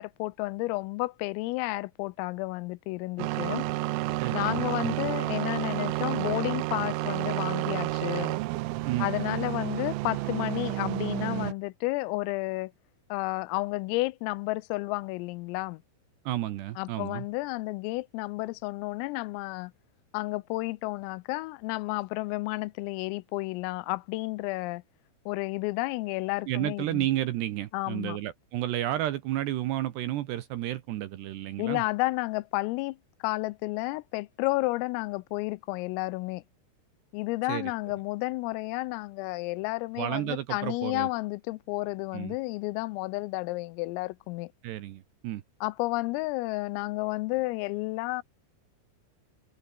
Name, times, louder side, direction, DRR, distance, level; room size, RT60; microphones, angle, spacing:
voice 1, 0.0-3.7 4.3-8.4 9.0-12.7 13.1-15.8 16.8-19.7 20.1-24.8 25.3-27.1 27.7-28.2 31.6-33.0 33.2-36.4 37.1-44.5 45.6-48.2, left 22 dB, 85° left, 3.3 m, -31 dB
sound 1, 3.2-11.5, right 19 dB, 90° right, 3.4 m, -30 dB
voice 2, 4.2-5.0 8.8-9.1 16.3-17.3 26.5-31.8 37.5-37.7 40.0-41.1 42.1-42.4 44.6-45.4, right 13 dB, 70° right, 2.7 m, -32 dB
omnidirectional pair, 6.0 m